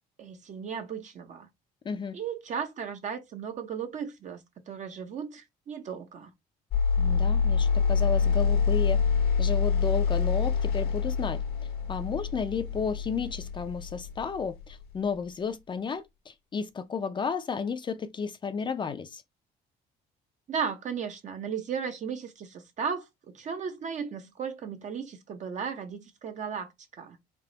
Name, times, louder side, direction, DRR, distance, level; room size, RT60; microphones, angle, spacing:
voice 1, 0.2-1.5 2.1-4.4 4.7-6.3 20.5-26.7 27.0-27.2, right 6 dB, 45° right, 0.6 m, -35 dB
voice 2, 1.8-2.2 7.0-9.0 9.4-11.4 11.9-19.2, left 5 dB, 30° left, 0.4 m, -33 dB
sound 1, 6.7-14.8, left 5 dB, 65° left, 0.8 m, -26 dB
3.4 x 2.3 x 3.8 m
cardioid pair, 110°, 17 cm